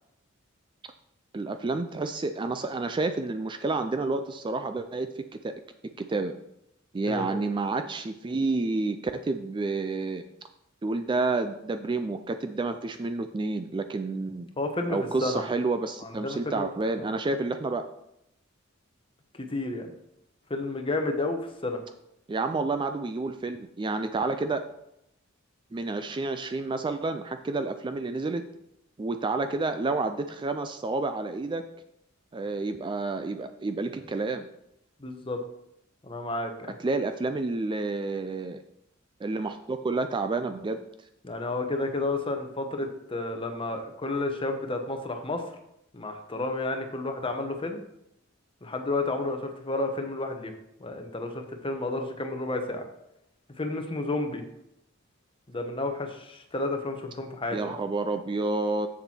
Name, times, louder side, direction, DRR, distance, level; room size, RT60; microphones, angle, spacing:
voice 1, 1.3-5.5 6.0-6.3 6.9-10.2 10.8-14.5 14.9-17.8 22.3-24.6 25.7-28.4 29.0-31.6 32.3-34.5 36.8-38.6 39.2-40.9 57.5-58.9, right 3 dB, 25° right, 8 dB, 0.4 m, -29 dB
voice 2, 14.6-15.4 16.0-16.7 17.0-17.1 19.3-19.9 20.5-21.8 35.0-35.4 36.0-36.7 41.2-45.5 45.9-47.8 48.6-50.5 50.8-52.9 53.6-54.4 55.5-57.8, left 2 dB, 25° left, 5 dB, 0.9 m, -31 dB
7.4 x 6.7 x 4.4 m, 0.81 s
head